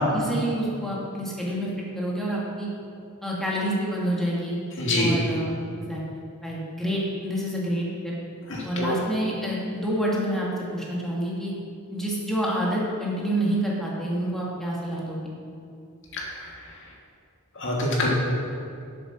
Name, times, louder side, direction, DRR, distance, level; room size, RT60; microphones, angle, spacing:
voice 1, 0.1-1.7 1.9-2.7 3.2-4.6 5.0-5.5 5.9-7.9 8.6-11.5 11.9-15.2, right 1 dB, ahead, -5 dB, 1.8 m, -28 dB
voice 2, 4.8-5.1 8.5-8.9 16.1-16.2 17.6-18.1, left 1 dB, 60° left, -2 dB, 1.8 m, -25 dB
8.0 x 7.7 x 6.0 m, 2.4 s
head